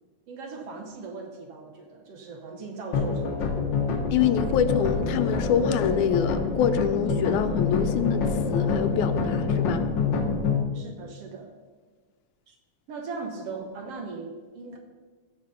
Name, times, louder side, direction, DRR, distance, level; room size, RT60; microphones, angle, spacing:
voice 1, 0.3-3.7 10.7-11.5 12.5-12.6 12.9-14.8, right 4 dB, 65° right, 3 dB, 1.8 m, -39 dB
sound 1, 2.9-10.6, left 5 dB, 55° left, 1.4 m, -26 dB
voice 2, 4.1-9.8, left 8 dB, 80° left, 10 dB, 2.0 m, -25 dB
15.0 x 5.9 x 5.4 m, 1.4 s
omnidirectional pair, 3.5 m